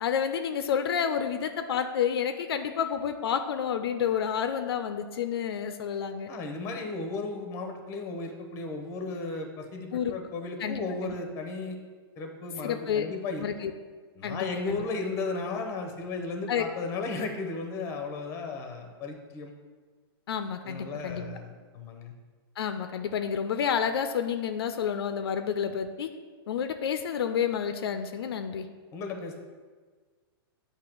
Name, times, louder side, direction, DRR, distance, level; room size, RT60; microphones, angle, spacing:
voice 1, 0.0-6.3 9.9-10.2 10.6-11.2 12.6-13.1 13.4-13.7 14.2-14.8 16.5-16.7 20.3-21.2 22.6-26.1 26.5-28.7, left 8 dB, 75° left, 9 dB, 0.5 m, -29 dB
voice 2, 6.3-11.8 12.2-13.5 14.1-19.5 20.6-22.1 28.9-29.4, left 3 dB, 20° left, 4 dB, 0.8 m, -35 dB
8.5 x 2.8 x 6.0 m, 1.5 s
hypercardioid pair, 160°, 13 cm